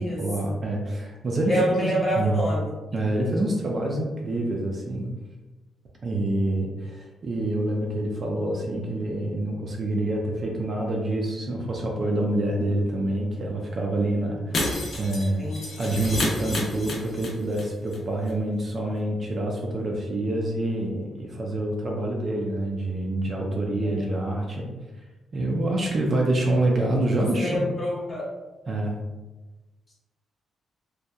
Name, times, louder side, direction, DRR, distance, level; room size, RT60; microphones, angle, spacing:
voice 1, 0.0-2.4 2.9-5.1 6.0-24.7 25.3-27.7 28.7-29.0, right 1 dB, 35° right, -1 dB, 0.3 m, -27 dB
voice 2, 1.5-2.7 15.4-15.7 23.8-24.0 27.2-28.3, equal, 25° left, -6 dB, 0.9 m, -27 dB
Shatter, 14.5-17.6 17.9-18.0 18.3-18.4, left 1 dB, 50° left, 0.6 m, -29 dB
2.7 x 2.2 x 2.3 m, 1.1 s
cardioid pair, 145°, 0 cm